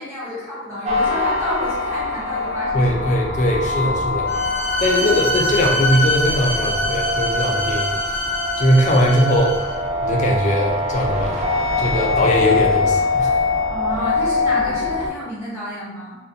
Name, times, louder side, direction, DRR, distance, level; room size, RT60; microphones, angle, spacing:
voice 1, 0.0-3.1 3.8-3.9 4.9-5.2 13.7-16.1, equal, 15° right, -11 dB, 1.1 m, -30 dB
sound 1, 0.9-15.1, left 3 dB, 35° right, 0.3 m, -23 dB
voice 2, 2.7-4.3 4.8-7.9 8.6-9.6 10.0-11.5 11.8-13.3, equal, 40° left, 0 dB, 0.3 m, -20 dB
Bowed string instrument, 4.3-9.8, left 1 dB, 65° right, 0.9 m, -24 dB
2.3 x 2.1 x 2.6 m, 1.1 s
head